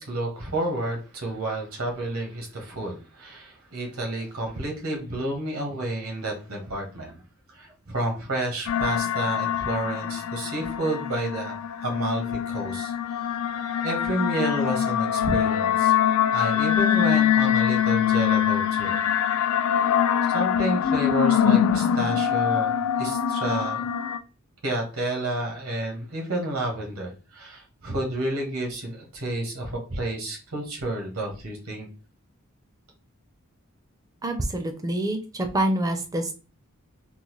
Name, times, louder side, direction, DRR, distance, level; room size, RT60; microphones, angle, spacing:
voice 1, 0.0-7.2 7.5-11.5 11.8-13.4 13.8-15.9 16.3-19.0 20.3-23.8 24.6-31.9, right 1 dB, 80° right, 1 dB, 1.2 m, -30 dB
sound 1, 8.7-24.2, left 9 dB, 85° left, 0.3 m, -24 dB
voice 2, 34.2-36.3, right 1 dB, 15° right, 6 dB, 0.5 m, -26 dB
3.8 x 2.2 x 3.1 m, 0.33 s
head